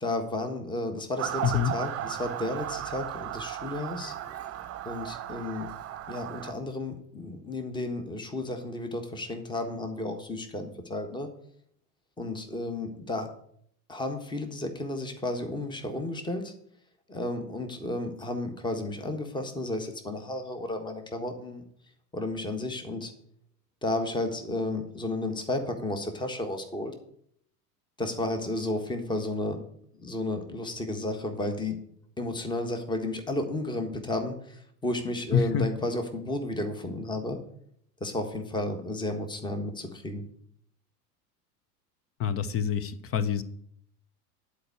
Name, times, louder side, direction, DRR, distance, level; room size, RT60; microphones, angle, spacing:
voice 1, 0.0-4.1 4.8-5.7 6.1-11.3 12.2-13.3 13.9-16.5 17.1-21.6 22.1-23.1 23.8-26.9 28.0-29.6 29.9-31.8 32.2-37.4 38.0-40.3, left 2 dB, 10° left, 6 dB, 1.4 m, -32 dB
Motor vehicle (road) / Siren, 1.2-6.5, right 12 dB, 30° right, 1.0 m, -36 dB
voice 2, 1.4-1.8 35.3-35.7 42.2-43.4, left 7 dB, 30° left, 14 dB, 0.8 m, -26 dB
10.5 x 4.8 x 8.0 m, 0.67 s
figure-of-eight pair, 80°, 46 cm